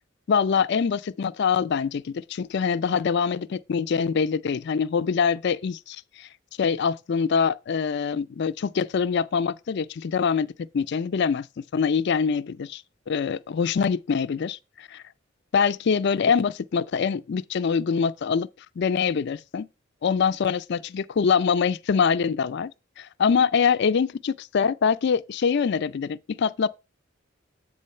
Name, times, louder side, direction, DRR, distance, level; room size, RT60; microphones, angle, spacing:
voice 1, 0.3-6.3 6.6-15.0 15.5-18.5 18.8-19.7 20.0-22.7 23.0-26.7, left 6 dB, 55° left, 0.4 m, -24 dB
8.4 x 3.8 x 5.4 m
head